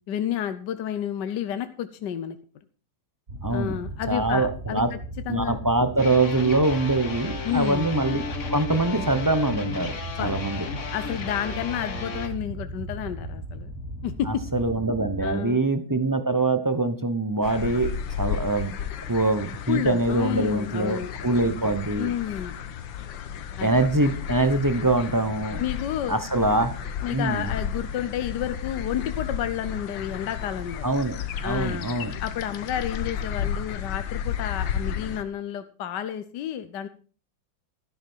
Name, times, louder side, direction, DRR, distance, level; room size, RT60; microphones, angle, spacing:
voice 1, 0.1-2.4 3.5-4.8 5.3-5.6 7.4-7.9 10.2-10.3 10.9-13.7 14.0-14.4 15.2-15.6 19.7-21.1 22.0-22.5 23.5-23.7 25.6-26.2 27.0-30.9 31.4-31.9 32.2-36.9, left 10 dB, 70° left, 10 dB, 1.4 m, -30 dB
sound 1, 3.3-15.3, right 1 dB, 45° right, 3.5 m, -36 dB
voice 2, 3.4-3.8 4.1-4.9 5.3-8.2 8.5-10.7 14.3-18.7 19.1-22.1 23.6-25.6 26.1-26.7 27.1-27.5 30.8-31.2 31.4-32.1, right 2 dB, 20° right, 10 dB, 0.5 m, -24 dB
sound 2, 6.0-12.3, left 5 dB, 45° left, 1.6 m, -34 dB
sound 3, 17.4-35.2, left 8 dB, 85° left, 1.7 m, -33 dB
13.0 x 11.0 x 4.5 m, 0.38 s
omnidirectional pair, 2.0 m